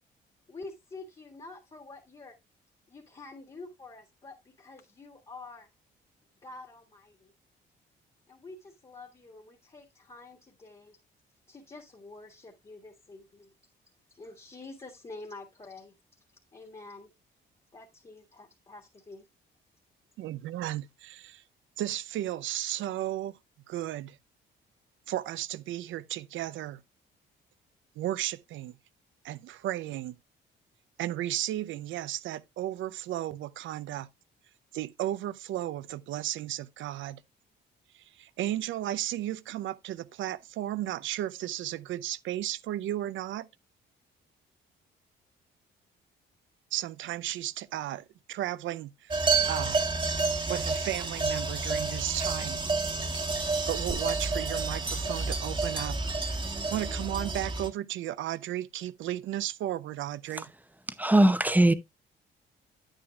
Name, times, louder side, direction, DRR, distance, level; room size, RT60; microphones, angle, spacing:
voice 1, 0.5-2.4 2.9-5.7 6.4-7.3 8.3-11.0 11.5-13.5 14.1-15.9 16.5-17.1 17.7-19.3, left 3 dB, 30° left, 1.7 m, -47 dB
voice 2, 20.2-21.4 21.8-23.4 23.7-24.2 25.1-26.8 28.0-28.7 29.2-30.2 31.0-34.1 34.7-37.2 37.9-43.5 46.7-49.8 50.5-52.6 53.3-56.1 56.4-60.5, right 13 dB, 80° right, 0.5 m, -34 dB
sound 1, 49.1-57.7, right 3 dB, 25° right, 1.3 m, -30 dB
voice 3, 61.0-61.7, right 1 dB, 10° right, 0.7 m, -20 dB
8.9 x 8.9 x 2.3 m
cardioid pair, 90°, 20 cm